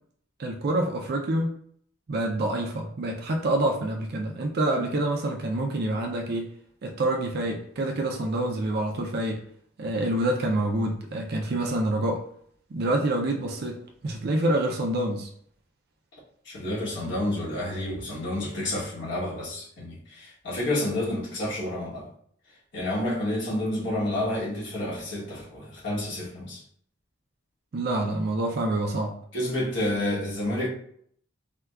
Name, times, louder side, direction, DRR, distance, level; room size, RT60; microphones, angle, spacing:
voice 1, 0.4-1.6 2.1-6.5 6.8-9.4 9.8-12.2 12.7-15.3 17.0-17.1 27.7-29.2, right 1 dB, 50° right, 0.4 m, -27 dB
voice 2, 16.4-22.1 22.7-26.6 29.3-30.7, left 1 dB, 60° left, 1.1 m, -29 dB
4.5 x 2.2 x 2.3 m
head